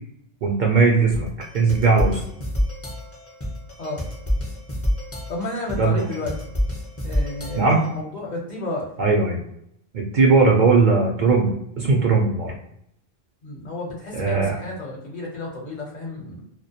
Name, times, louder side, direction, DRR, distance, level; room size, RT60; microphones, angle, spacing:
voice 1, 0.4-1.3 1.5-2.2 5.8-6.0 7.6-7.8 9.0-9.4 9.9-12.5 14.1-14.6, right 4 dB, 60° right, 0 dB, 0.6 m, -18 dB
sound 1, 1.1-8.0, equal, 20° left, 0.5 m, -28 dB
voice 2, 5.3-6.3 7.0-8.9 13.4-16.4, left 2 dB, 50° left, -2 dB, 0.8 m, -31 dB
2.2 x 2.1 x 2.8 m, 0.74 s
omnidirectional pair, 1.0 m